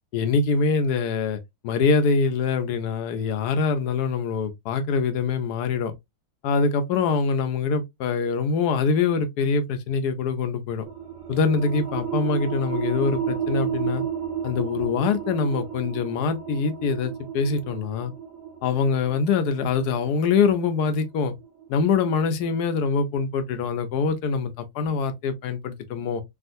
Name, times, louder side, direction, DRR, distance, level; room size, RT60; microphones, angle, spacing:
voice 1, 0.1-1.4 1.6-5.9 6.4-10.9 11.3-14.0 14.4-18.1 18.6-21.3 21.7-26.2, left 5 dB, 70° left, 1.1 m, -24 dB
sound 1, 10.8-22.1, right 8 dB, 70° right, 1.3 m, -32 dB
3.5 x 2.4 x 2.5 m
omnidirectional pair, 1.9 m